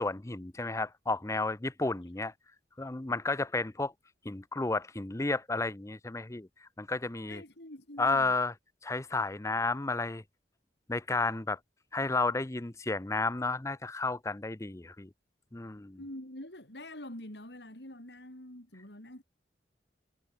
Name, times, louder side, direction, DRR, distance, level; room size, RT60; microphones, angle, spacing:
voice 1, 0.0-2.3 2.8-3.9 4.2-6.5 6.8-7.4 8.0-8.5 8.8-10.2 10.9-11.6 11.9-15.1 15.5-16.0, left 3 dB, 15° left, 0.6 m, -32 dB
voice 2, 7.3-8.3 16.0-19.2, left 1 dB, 75° left, 6.3 m, -45 dB
head